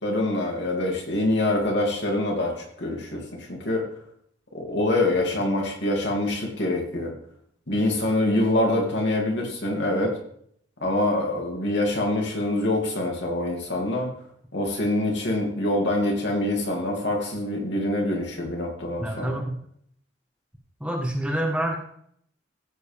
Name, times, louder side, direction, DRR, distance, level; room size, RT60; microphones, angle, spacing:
voice 1, 0.0-3.8 4.5-7.1 7.7-10.1 10.8-14.1 14.5-19.4, left 1 dB, 60° left, 0 dB, 2.8 m, -25 dB
voice 2, 19.0-19.6 20.8-21.8, right 1 dB, 5° right, 0 dB, 1.4 m, -27 dB
15.5 x 7.9 x 3.5 m, 0.67 s
head